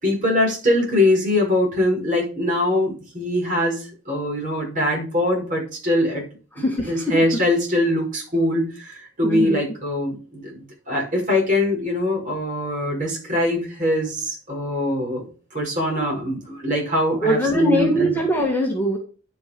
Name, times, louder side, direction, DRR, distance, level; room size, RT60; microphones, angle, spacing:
voice 1, 0.0-6.2 6.6-15.3 15.5-18.1, left 1 dB, 40° right, -2 dB, 5.7 m, -22 dB
voice 2, 6.6-7.0 9.2-9.6 17.2-19.0, equal, 10° left, 0 dB, 1.7 m, -21 dB
10.5 x 6.0 x 5.2 m, 0.36 s
head